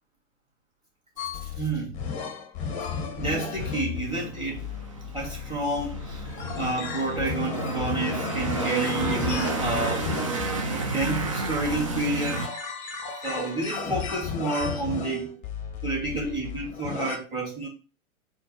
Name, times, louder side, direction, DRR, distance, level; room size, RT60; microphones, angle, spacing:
sound 1, 1.2-17.2, left 6 dB, 20° left, 0.8 m, -34 dB
voice 1, 1.4-2.0 3.1-4.6 5.1-6.3 6.6-10.1 10.7-12.5 13.2-15.3 15.8-17.7, right 2 dB, 10° right, 1.8 m, -30 dB
sound 2, 4.1-12.5, right 2 dB, 25° right, 0.3 m, -31 dB
4.4 x 2.1 x 4.3 m
figure-of-eight pair, 115°, 43 cm